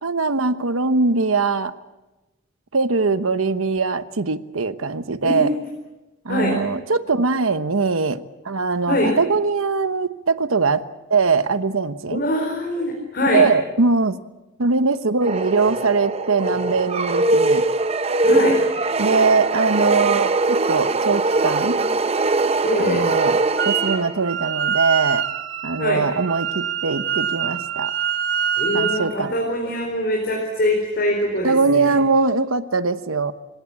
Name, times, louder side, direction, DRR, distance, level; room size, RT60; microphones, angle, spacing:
voice 1, 0.0-1.7 2.7-5.5 6.2-10.8 11.1-12.2 13.3-14.2 14.6-17.6 19.0-21.8 22.8-25.2 25.6-27.9 28.7-29.3 31.4-33.3, right 4 dB, 85° right, 12 dB, 1.1 m, -21 dB
voice 2, 12.1-13.4 18.2-18.6 22.6-23.0 25.8-26.0 28.6-32.0, left 1 dB, 50° left, 0 dB, 4.6 m, -23 dB
sound 1, 15.2-24.3, right 2 dB, 30° right, 0.7 m, -21 dB
Wind instrument woodwind instrument, 23.6-24.0 24.2-29.1, right 8 dB, 60° right, 1.8 m, -25 dB
26.5 x 17.5 x 8.6 m, 1.1 s
head